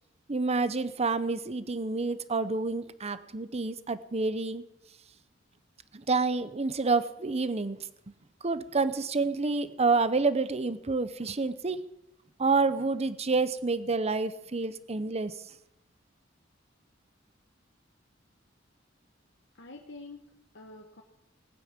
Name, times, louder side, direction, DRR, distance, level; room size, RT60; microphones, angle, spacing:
voice 1, 0.3-4.6 5.9-7.8 8.4-11.8 12.4-15.3, right 3 dB, 35° right, 14 dB, 0.8 m, -28 dB
voice 2, 19.5-21.0, left 3 dB, 65° left, 2 dB, 1.4 m, -47 dB
19.0 x 9.7 x 7.3 m, 0.85 s
head